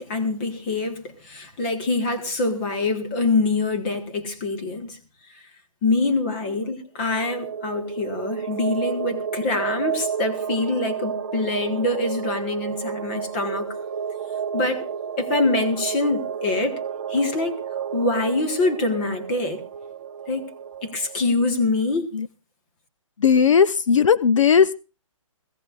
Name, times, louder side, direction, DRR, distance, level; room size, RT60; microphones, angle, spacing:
voice 1, 0.0-5.0 5.8-13.7 14.5-14.8 15.2-16.7 17.1-17.6 17.9-19.6 20.3-20.5 20.8-22.1, left 3 dB, 20° left, 1.3 m, -24 dB
sound 1, 7.0-21.3, right 7 dB, 30° right, 2.0 m, -31 dB
voice 2, 23.2-24.8, left 6 dB, 70° left, 0.7 m, -17 dB
18.5 x 16.5 x 2.5 m
hypercardioid pair, 180°, 17 cm